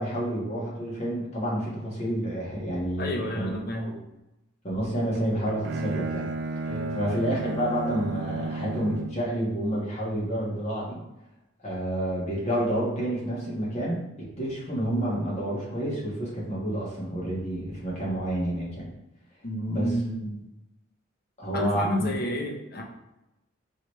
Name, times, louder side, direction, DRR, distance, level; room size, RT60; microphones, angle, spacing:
voice 1, 0.0-4.0 4.6-6.3 6.6-11.0 11.6-14.0 14.4-18.9 19.7-19.9 21.4-22.1, right 1 dB, 35° left, -6 dB, 1.4 m, -29 dB
voice 2, 3.0-3.9 6.7-7.0 19.4-20.5 21.5-22.8, left 1 dB, 50° left, 1 dB, 0.7 m, -30 dB
Bowed string instrument, 5.1-9.3, right 3 dB, 55° right, 0.4 m, -33 dB
4.8 x 3.1 x 3.1 m, 0.93 s
head